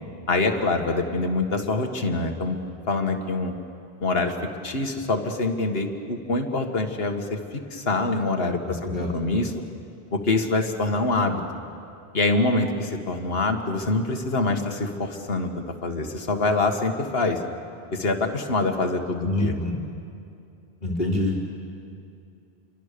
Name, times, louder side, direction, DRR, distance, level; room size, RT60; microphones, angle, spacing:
voice 1, 0.3-2.6 2.9-3.5 4.0-4.3 4.6-8.8 9.1-9.5 10.1-11.4 12.1-17.4 17.9-19.6, left 2 dB, 70° left, 4 dB, 1.9 m, -25 dB
voice 2, 8.7-9.1 19.2-19.8 20.8-21.5, left 1 dB, 50° left, -5 dB, 2.8 m, -26 dB
28.0 x 24.0 x 6.8 m, 2.6 s
omnidirectional pair, 1.0 m